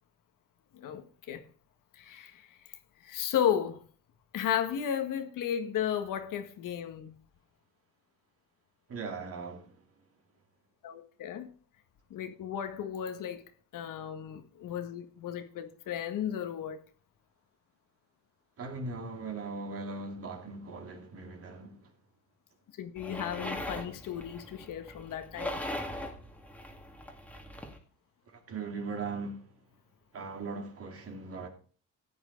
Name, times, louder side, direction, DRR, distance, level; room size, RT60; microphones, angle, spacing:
voice 1, 0.7-1.4 1.9-2.4 3.0-3.8 4.3-7.2 10.8-11.5 12.1-13.4 13.7-16.8 22.8-25.6, left 9 dB, 70° left, 1.7 m, -34 dB
voice 2, 8.9-9.6 18.6-21.7 28.5-29.4 30.1-31.5, right 4 dB, 45° right, 2.5 m, -39 dB
sound 1, 23.0-27.8, left 1 dB, 5° left, 2.1 m, -40 dB
14.5 x 9.4 x 3.9 m
cardioid pair, 120°, 33 cm